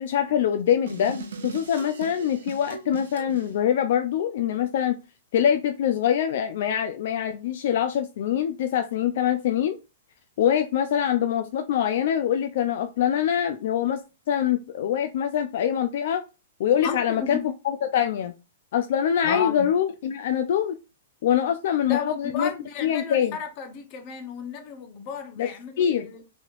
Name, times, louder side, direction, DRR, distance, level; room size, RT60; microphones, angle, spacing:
voice 1, 0.0-4.9 5.3-9.8 10.4-14.0 14.3-16.2 16.6-17.4 17.6-18.3 18.7-20.8 21.2-22.5 22.8-23.4 25.4-25.5 25.8-26.1, left 9 dB, 60° left, 0.3 m, -24 dB
sound 1, 0.9-3.5, right 5 dB, 85° right, 0.7 m, -38 dB
voice 2, 16.8-17.5 19.2-19.7 21.9-26.2, left 7 dB, 35° left, 0.7 m, -33 dB
3.1 x 2.9 x 2.4 m
hypercardioid pair, 155°, 0 cm